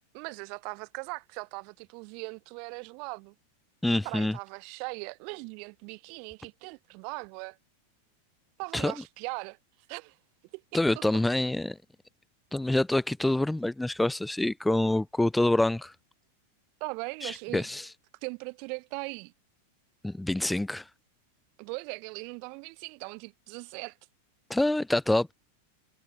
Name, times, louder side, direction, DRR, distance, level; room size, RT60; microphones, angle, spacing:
voice 1, 0.1-3.3 4.0-7.6 8.6-9.6 9.9-10.2 10.5-11.0 16.8-17.7 18.2-19.3 21.6-24.0, right 37 dB, 45° right, 4.4 m, -39 dB
voice 2, 3.8-4.4 8.7-8.9 10.7-11.8 12.5-15.9 17.2-17.9 20.0-20.9 24.5-25.3, left 1 dB, 5° left, 0.7 m, -26 dB
figure-of-eight pair, 90°, 0 cm